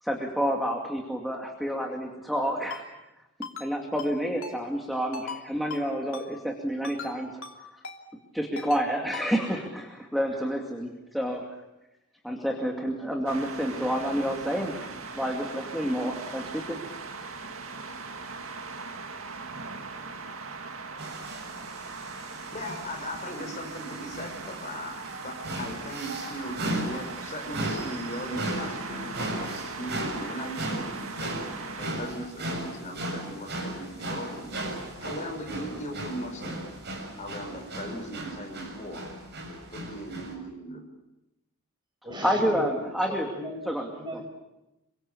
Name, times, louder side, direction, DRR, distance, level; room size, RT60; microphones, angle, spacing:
voice 1, 0.0-2.8 3.6-7.4 8.3-11.5 12.2-16.8 42.2-43.3 43.7-43.9, equal, ahead, 0 dB, 2.4 m, -29 dB
Ringtone, 2.7-2.8 3.4-3.7 4.0-4.1 4.4-4.6 5.1-5.4 5.7-5.8 6.1-6.3 6.8-7.1 7.4-7.5 7.8-8.0 8.6-8.8 9.1-9.3, left 5 dB, 65° left, 3.1 m, -38 dB
sound 1, 13.3-31.9, right 4 dB, 65° right, 2.2 m, -39 dB
sound 2, 21.0-40.3, right 1 dB, 50° right, 7.3 m, -37 dB
voice 2, 22.5-24.9 25.2-31.4 31.8-36.6 37.2-39.1 39.7-40.8, equal, 35° left, 3 dB, 6.1 m, -38 dB
voice 3, 42.0-44.3, equal, 20° right, 3 dB, 5.8 m, -38 dB
28.0 x 24.5 x 7.1 m, 0.96 s
head